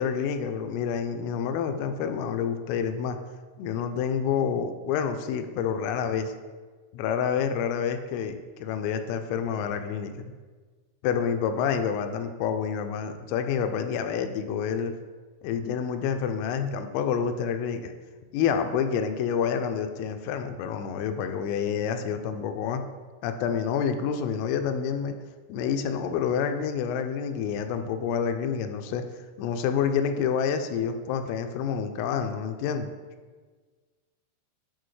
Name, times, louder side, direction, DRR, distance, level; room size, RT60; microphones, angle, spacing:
voice 1, 0.0-3.2 3.6-6.3 6.9-10.3 11.0-14.9 15.4-17.9 18.3-22.8 23.2-25.2 25.5-29.0 29.4-32.9, left 7 dB, 85° left, 7 dB, 3.1 m, -28 dB
11.0 x 4.2 x 3.2 m, 1.4 s
omnidirectional pair, 5.8 m